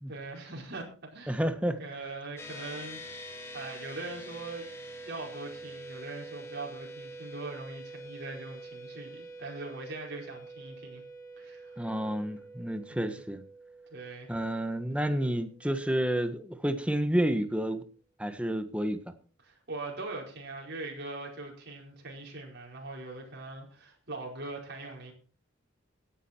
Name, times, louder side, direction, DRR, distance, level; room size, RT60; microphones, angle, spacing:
voice 1, 0.1-0.8 1.1-1.4 1.8-3.0 3.5-4.7 5.0-11.0 11.4-11.8 12.9-13.2 13.9-14.3 19.4-25.1, right 2 dB, 55° right, -1 dB, 4.8 m, -41 dB
voice 2, 1.3-1.8 11.8-13.4 14.3-17.8 18.2-19.1, right 1 dB, 5° right, 8 dB, 1.3 m, -30 dB
sound 1, 2.4-16.0, right 1 dB, 15° left, 2.9 m, -46 dB
17.0 x 10.0 x 4.5 m, 0.39 s
head